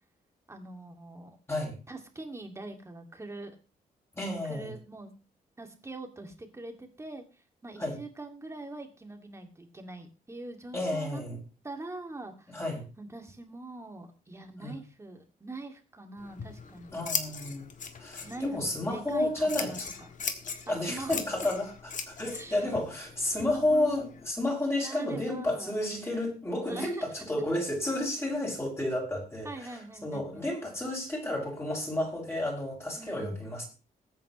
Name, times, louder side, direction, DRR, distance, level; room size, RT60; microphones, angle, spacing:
voice 1, 0.5-1.4 1.9-3.6 4.4-5.1 5.6-7.2 7.6-11.2 11.6-12.6 13.0-17.0 18.2-20.1 20.7-21.2 22.3-22.6 23.4-24.0 24.8-25.7 26.6-27.1 29.4-30.5 33.0-33.4, right 2 dB, 20° right, 4 dB, 2.4 m, -43 dB
voice 2, 4.1-4.7 7.8-8.0 10.7-11.4 12.5-12.9 14.6-14.8 16.9-17.7 18.0-19.7 20.7-21.7 22.1-29.7 30.0-33.6, left 1 dB, 15° left, -1 dB, 7.0 m, -31 dB
Scissors, 16.2-24.3, left 6 dB, 55° left, 1.7 m, -40 dB
21.0 x 9.1 x 3.2 m, 0.31 s
wide cardioid pair, 130°, 16 cm